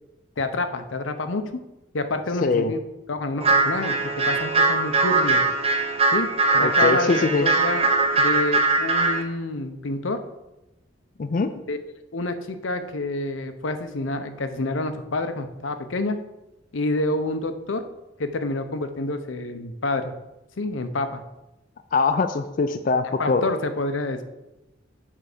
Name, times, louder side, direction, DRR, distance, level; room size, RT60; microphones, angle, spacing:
voice 1, 0.4-1.5 1.9-2.8 3.1-5.4 6.1-6.3 6.5-7.9 8.2-10.2 11.7-11.8 12.1-16.2 16.7-17.8 18.2-20.1 20.6-21.2 23.0-24.2, left 2 dB, 85° left, 8 dB, 0.8 m, -28 dB
voice 2, 2.4-2.7 6.6-7.5 11.2-11.5 21.9-23.5, left 4 dB, 45° left, 8 dB, 0.4 m, -22 dB
sound 1, 3.4-9.2, right 3 dB, 30° right, 0.9 m, -21 dB
7.5 x 4.6 x 6.6 m, 0.98 s
head